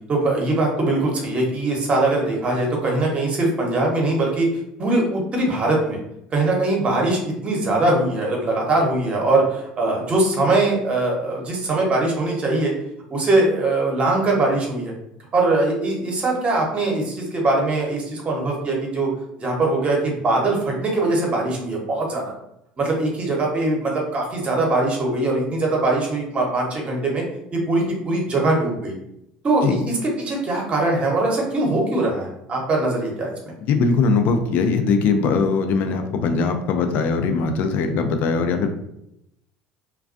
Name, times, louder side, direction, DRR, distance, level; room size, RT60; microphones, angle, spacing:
voice 1, 0.1-4.5 4.8-6.0 6.3-12.7 13.1-14.9 15.3-19.1 19.4-22.3 22.8-27.2 27.5-28.9 29.4-33.5, right 2 dB, 35° right, -1 dB, 0.9 m, -21 dB
voice 2, 33.7-38.7, left 4 dB, 55° left, 6 dB, 0.4 m, -20 dB
2.3 x 2.2 x 2.5 m, 0.80 s
hypercardioid pair, 75°, 4 cm